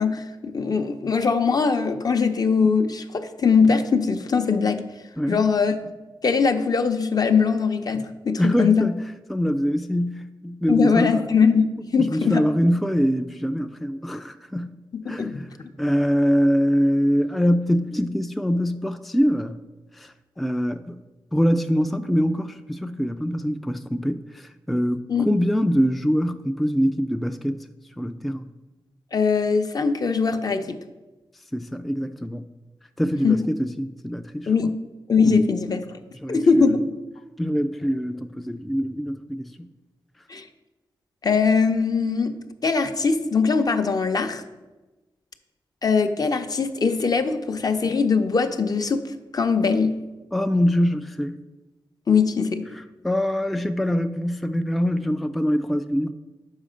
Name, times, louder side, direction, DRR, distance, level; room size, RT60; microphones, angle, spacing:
voice 1, 0.0-4.8 5.3-5.9 6.2-8.9 10.7-12.4 15.1-15.4 25.1-25.3 29.1-30.8 33.2-33.5 34.5-34.7 35.1-35.8 36.3-36.8 40.3-40.4 41.2-42.3 42.6-44.4 45.8-49.0 49.3-50.0 52.1-52.7, left 5 dB, 50° left, 0.6 m, -21 dB
voice 2, 5.2-5.5 8.4-9.0 9.3-11.2 12.0-14.8 15.1-15.5 15.8-19.6 19.9-20.9 21.3-27.7 28.0-28.5 31.5-32.5 33.0-34.5 35.2-35.4 36.2-36.8 37.4-39.7 50.3-51.4 52.7-56.1, equal, ahead, 0.3 m, -24 dB
6.4 x 4.9 x 5.0 m
cardioid pair, 60°, 9 cm